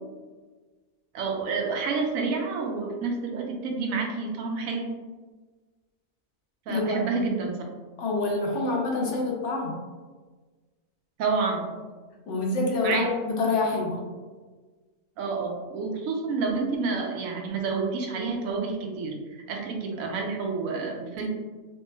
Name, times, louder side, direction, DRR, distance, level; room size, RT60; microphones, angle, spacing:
voice 1, 1.1-4.9 6.7-7.6 11.2-11.8 12.8-13.1 15.2-21.3, right 4 dB, 90° right, 1 dB, 1.0 m, -29 dB
voice 2, 6.7-7.0 8.0-9.8 12.3-14.0, left 3 dB, 65° left, -1 dB, 0.9 m, -26 dB
3.3 x 3.0 x 2.2 m, 1.4 s
omnidirectional pair, 1.4 m